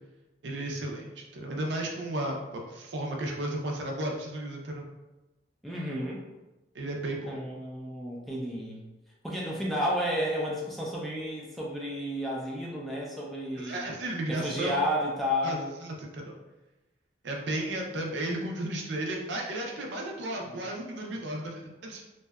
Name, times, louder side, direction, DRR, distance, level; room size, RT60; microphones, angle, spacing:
voice 1, 0.4-4.9 6.7-7.4 13.6-14.8 15.4-16.3 17.2-22.0, right 1 dB, 85° right, 1 dB, 0.5 m, -34 dB
voice 2, 5.6-6.2 7.3-8.8 9.2-13.9 14.3-15.7 20.5-20.6, equal, ahead, -4 dB, 0.3 m, -32 dB
2.6 x 2.1 x 2.3 m, 1.1 s
head